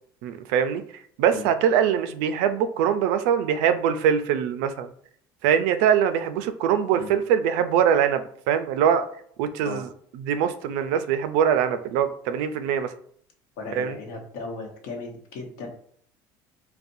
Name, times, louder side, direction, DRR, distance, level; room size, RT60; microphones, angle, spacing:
voice 1, 0.2-0.8 1.2-4.9 5.4-9.1 9.4-12.9 13.7-14.0, right 8 dB, 85° right, 10 dB, 0.4 m, -23 dB
voice 2, 13.6-15.7, left 3 dB, 90° left, 2 dB, 0.9 m, -36 dB
4.0 x 2.1 x 2.5 m, 0.63 s
cardioid pair, 145°, 9 cm